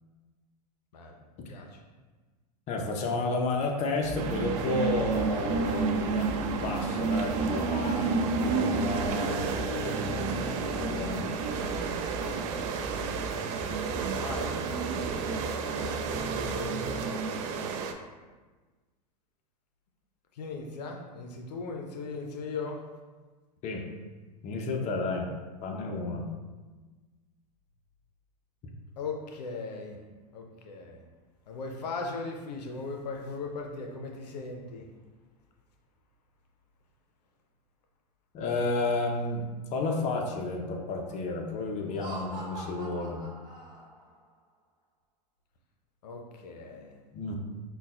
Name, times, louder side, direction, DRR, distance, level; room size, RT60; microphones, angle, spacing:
voice 1, 2.7-11.3 23.6-23.8 24.4-25.3 25.6-26.3 38.3-43.2 47.1-47.4, left 3 dB, 35° left, 1 dB, 0.5 m, -32 dB
sound 1, 4.0-17.1, equal, ahead, 1.3 m, -40 dB
sound 2, 4.1-17.9, right 5 dB, 50° right, 0.4 m, -31 dB
voice 2, 14.2-14.6 16.4-17.6 20.4-22.8 29.0-30.0 30.3-31.0 31.5-34.8 46.0-47.0, left 3 dB, 80° left, 2 dB, 0.5 m, -38 dB
Laughter, 41.8-44.1, right 2 dB, 20° right, 1.0 m, -43 dB
5.2 x 2.2 x 2.3 m, 1.3 s
hypercardioid pair, 105°, 21 cm